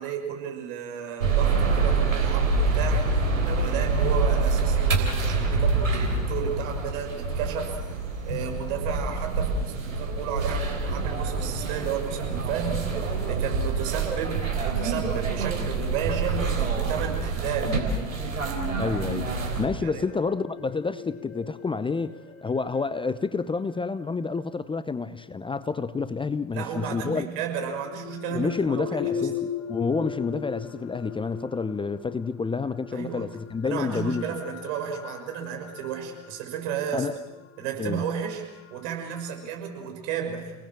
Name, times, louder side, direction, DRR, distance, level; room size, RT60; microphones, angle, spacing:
voice 1, 0.0-3.0 3.4-7.8 8.3-12.8 13.3-17.8 19.8-20.0 26.5-29.3 32.9-33.3 33.6-37.1 37.6-38.4 38.7-40.5, right 7 dB, 60° right, 6.4 m, -33 dB
sound 1, 1.2-19.7, right 4 dB, 85° right, 3.8 m, -26 dB
voice 2, 18.8-22.2 22.4-27.3 28.3-34.2 36.9-37.1 37.8-38.0, left 4 dB, 15° left, 0.8 m, -29 dB
sound 2, 19.8-25.9 27.0-39.5, left 8 dB, 40° left, 5.6 m, -39 dB
30.0 x 19.5 x 7.7 m
hypercardioid pair, 80°, 39 cm